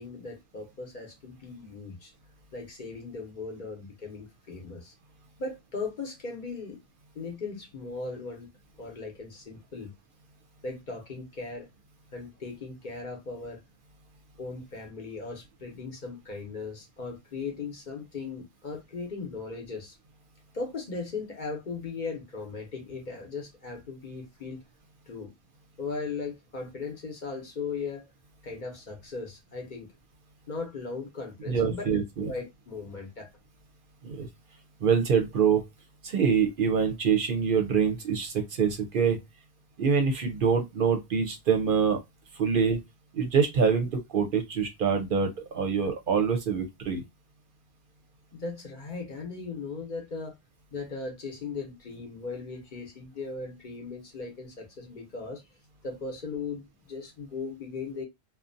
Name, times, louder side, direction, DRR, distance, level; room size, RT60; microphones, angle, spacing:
voice 1, 0.0-2.1 2.5-4.9 5.4-6.8 7.1-8.5 8.8-9.9 10.6-11.7 12.1-13.6 14.4-20.0 20.5-24.6 25.1-25.3 25.8-28.1 28.4-29.9 30.5-31.9 32.2-33.3 48.3-50.3 50.7-55.4 55.8-58.0, left 4 dB, 50° left, 0.8 m, -38 dB
voice 2, 31.5-32.3 34.0-34.3 34.8-35.6 36.0-39.2 39.8-42.0 42.3-42.8 43.1-47.0, right 6 dB, 60° right, 0.7 m, -25 dB
2.5 x 2.1 x 2.5 m
omnidirectional pair, 1.1 m